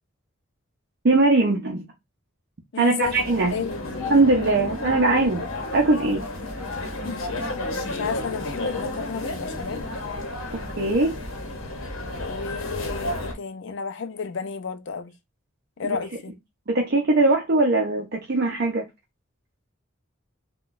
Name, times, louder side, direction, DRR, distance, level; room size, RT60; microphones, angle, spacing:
voice 1, 1.0-1.8 2.8-3.5 4.1-5.4 5.7-6.2 10.8-11.1 15.9-16.0 16.7-18.8, right 2 dB, 55° right, 0.6 m, -20 dB
voice 2, 2.7-3.2 3.5-3.7 7.0-7.3 7.9-9.9 12.2-15.1 15.8-16.3, left 5 dB, 60° left, 0.4 m, -32 dB
sound 1, 3.0-13.3, left 2 dB, 80° left, 0.9 m, -32 dB
3.7 x 2.3 x 2.5 m
head